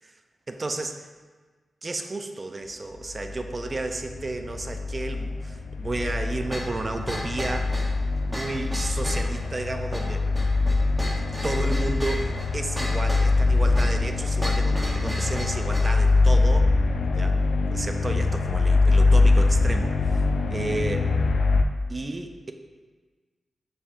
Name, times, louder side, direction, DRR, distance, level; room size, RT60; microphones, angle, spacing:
voice 1, 0.5-1.1 1.8-7.8 8.3-10.3 11.4-16.7 17.1-17.4 17.7-21.1 21.9-22.5, right 2 dB, 30° right, 6 dB, 0.5 m, -32 dB
sound 1, 3.0-21.6, left 3 dB, 80° left, 0.4 m, -23 dB
sound 2, 6.5-16.0, equal, 5° right, 0.8 m, -35 dB
6.8 x 5.6 x 2.5 m, 1.4 s
wide cardioid pair, 115°, 0 cm